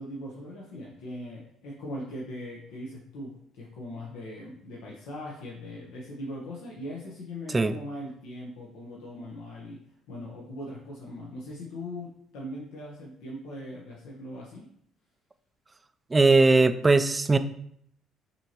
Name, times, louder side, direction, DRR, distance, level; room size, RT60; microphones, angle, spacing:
voice 1, 0.0-9.8 10.1-14.7, left 1 dB, 85° left, -3 dB, 0.8 m, -40 dB
voice 2, 16.1-17.4, right 3 dB, 20° right, 11 dB, 0.3 m, -19 dB
5.3 x 2.9 x 2.8 m, 0.68 s
supercardioid pair, 80°, 0 cm